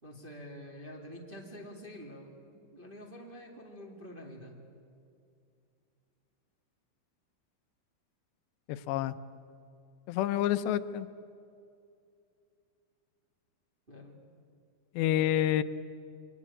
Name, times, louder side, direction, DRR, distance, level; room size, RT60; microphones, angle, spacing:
voice 1, 0.0-4.5 13.9-14.2, equal, 15° right, -1 dB, 1.9 m, -47 dB
voice 2, 8.7-9.2 10.1-11.1 15.0-15.6, left 12 dB, 85° left, 12 dB, 3.0 m, -28 dB
29.5 x 23.0 x 8.6 m, 2.5 s
omnidirectional pair, 4.9 m